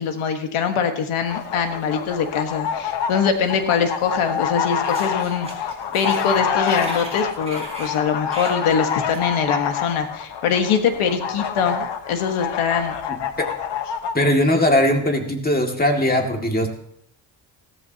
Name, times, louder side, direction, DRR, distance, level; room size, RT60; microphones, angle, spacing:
voice 1, 0.0-5.5 5.9-12.9, left 6 dB, 85° left, 6 dB, 1.6 m, -23 dB
sound 1, 1.2-14.1, left 7 dB, 60° left, 1.2 m, -27 dB
sound 2, 3.9-4.4 4.6-9.3, right 2 dB, 10° right, 4.4 m, -38 dB
voice 2, 13.1-13.5 14.1-16.7, left 1 dB, 20° left, 3 dB, 2.2 m, -20 dB
16.0 x 14.0 x 2.9 m, 0.67 s
cardioid pair, 95°, 48 cm